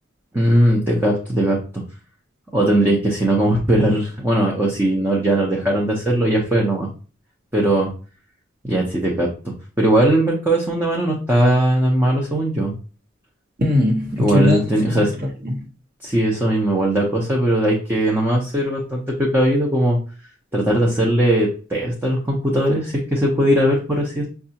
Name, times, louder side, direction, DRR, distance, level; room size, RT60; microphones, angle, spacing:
voice 1, 0.3-1.6 2.5-6.9 7.5-7.9 8.6-12.7 14.2-15.1 16.0-20.0 20.5-24.2, right 1 dB, 10° right, 0.6 m, -19 dB
voice 2, 13.6-15.6, left 1 dB, 50° right, 1.0 m, -21 dB
5.2 x 2.3 x 2.8 m
head